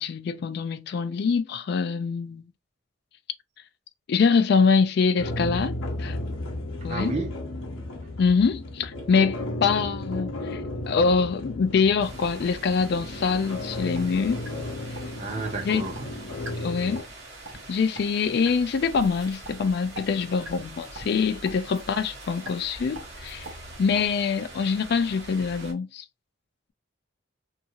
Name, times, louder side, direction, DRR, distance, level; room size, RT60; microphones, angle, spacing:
voice 1, 0.0-2.4 4.1-6.2 6.8-7.1 8.2-10.6 10.9-14.4 15.6-15.8 16.6-17.0 17.7-23.5 23.8-26.0, left 5 dB, 50° left, 0.3 m, -24 dB
sound 1, 5.2-17.0, left 1 dB, 70° left, 0.7 m, -34 dB
voice 2, 6.9-7.5 15.2-16.2, right 3 dB, 30° right, 0.4 m, -32 dB
sound 2, 12.0-25.7, right 2 dB, 50° right, 1.3 m, -44 dB
sound 3, 14.0-14.1 14.4-14.5 14.9-15.0 15.4-15.5 15.9-16.0 16.4-16.5 16.9-17.1 17.4-17.6 17.9-18.0 18.4-18.5 18.9-19.0 19.4-19.5 19.9-20.0 20.4-20.6 20.9-21.1 21.4-21.5 21.9-22.0 22.4-22.5 22.9-23.0 23.4-23.5 23.9-24.0, right 2 dB, 70° right, 0.8 m, -39 dB
2.7 x 2.3 x 2.8 m
head